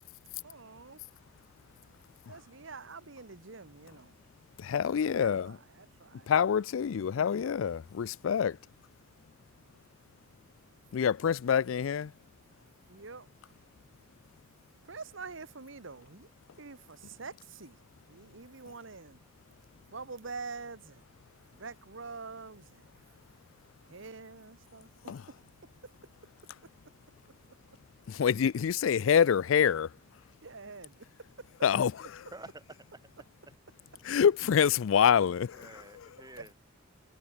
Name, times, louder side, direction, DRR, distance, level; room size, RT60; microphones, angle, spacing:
voice 1, 0.4-1.0 2.3-4.1 4.7-6.3 6.8-7.3 12.9-13.3 14.8-16.3 16.6-17.8 18.1-19.2 19.9-21.0 21.5-22.9 23.9-25.2 25.8-25.9 30.4-31.0 31.4-31.5 35.4-35.5 36.4-36.5, right 4 dB, 70° right, 1.4 m, -46 dB
voice 2, 4.6-5.5 6.3-8.6 10.9-12.1 25.1-25.2 28.1-29.9 31.6-31.9 34.1-35.5, left 7 dB, 75° left, 0.4 m, -26 dB
voice 3, 31.7-32.6 35.5-36.5, right 2 dB, 20° right, 3.3 m, -50 dB
head